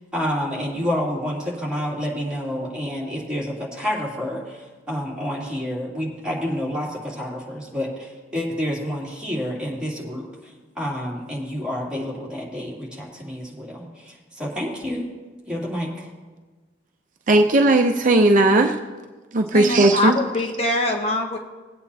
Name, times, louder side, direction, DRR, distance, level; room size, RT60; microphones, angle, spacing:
voice 1, 0.1-10.3 10.7-15.0 15.5-16.1, equal, 5° right, -6 dB, 2.9 m, -29 dB
voice 2, 17.3-18.8 19.3-20.2, right 2 dB, 45° right, 4 dB, 0.6 m, -16 dB
voice 3, 19.5-21.4, left 2 dB, 35° left, 3 dB, 0.8 m, -23 dB
20.5 x 8.6 x 2.8 m, 1.3 s
head